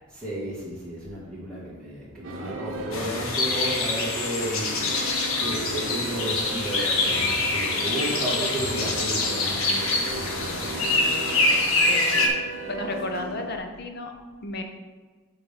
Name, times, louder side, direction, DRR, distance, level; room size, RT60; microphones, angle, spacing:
voice 1, 0.1-4.7 5.4-10.8, right 1 dB, 5° left, -8 dB, 2.0 m, -33 dB
sound 1, 2.2-13.6, right 2 dB, 60° right, 0.8 m, -36 dB
sound 2, 2.9-12.3, left 2 dB, 70° left, 1.1 m, -25 dB
voice 2, 11.9-12.3 12.7-14.1 14.4-14.6, left 2 dB, 45° left, 5 dB, 0.7 m, -33 dB
7.9 x 3.8 x 5.2 m, 1.4 s
head